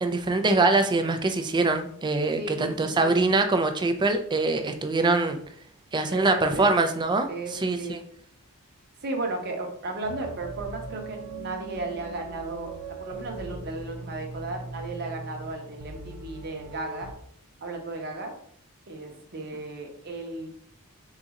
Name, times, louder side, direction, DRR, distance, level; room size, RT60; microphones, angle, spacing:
voice 1, 0.0-5.4 5.9-8.0, right 3 dB, 20° right, 6 dB, 0.4 m, -24 dB
voice 2, 2.4-3.2 6.1-6.7 7.3-8.0 9.0-17.1 17.6-18.3 18.9-20.5, right 2 dB, 45° right, 2 dB, 0.8 m, -35 dB
sound 1, 10.0-17.1, right 3 dB, 90° right, 0.7 m, -40 dB
3.9 x 2.4 x 4.0 m, 0.62 s
head